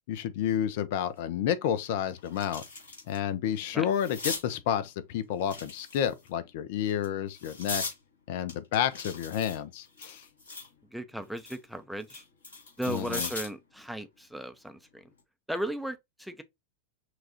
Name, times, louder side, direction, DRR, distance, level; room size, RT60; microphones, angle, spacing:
voice 1, 0.1-2.6 3.1-7.8 8.3-10.2 12.9-13.3, left 9 dB, 50° left, 0.6 m, -30 dB
sound 1, 1.2-1.3 1.7-3.2 3.5-4.5 5.4-6.3 6.9-8.0 8.5-10.7 11.1-13.6 15.0-15.2, left 3 dB, 75° left, 2.4 m, -39 dB
voice 2, 10.9-12.2 12.8-15.0 15.5-16.4, right 1 dB, ahead, 0.6 m, -36 dB
5.9 x 2.4 x 2.7 m
figure-of-eight pair, 90°, 0 cm